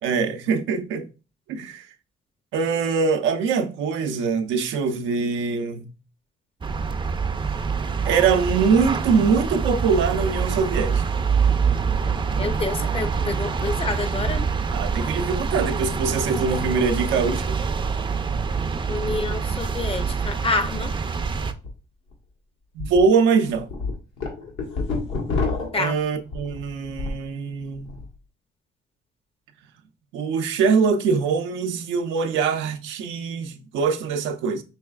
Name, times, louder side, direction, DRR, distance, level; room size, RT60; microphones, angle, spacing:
voice 1, 0.0-1.1 1.5-1.9 2.5-5.9 8.0-11.0 14.7-17.4 22.7-23.7 25.7-28.0 30.1-34.6, right 5 dB, 85° right, 0.6 m, -23 dB
sound 1, 6.6-21.5, right 5 dB, 25° right, 0.5 m, -25 dB
voice 2, 12.4-14.5 18.9-20.9 25.7-25.9, left 3 dB, 30° left, 0.6 m, -28 dB
sound 2, 21.5-21.7 22.1-22.2 22.8-23.0 23.4-27.3 27.6-28.0, left 3 dB, 80° left, 1.4 m, -28 dB
5.5 x 3.2 x 2.3 m
cardioid pair, 75°, 19 cm